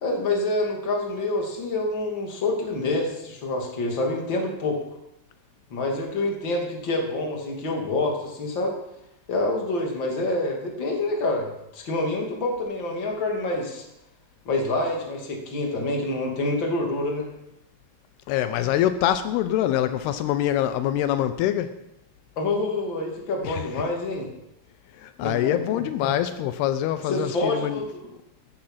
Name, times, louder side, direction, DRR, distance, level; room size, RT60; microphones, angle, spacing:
voice 1, 0.0-4.8 5.7-8.7 9.3-13.8 14.4-17.3 22.4-24.3 25.2-25.6 27.1-28.0, left 2 dB, 35° left, 2.9 m, -27 dB
voice 2, 18.3-21.8 23.4-23.6 25.0-27.8, left 12 dB, 85° left, 2.7 m, -24 dB
14.5 x 12.0 x 5.8 m
omnidirectional pair, 4.6 m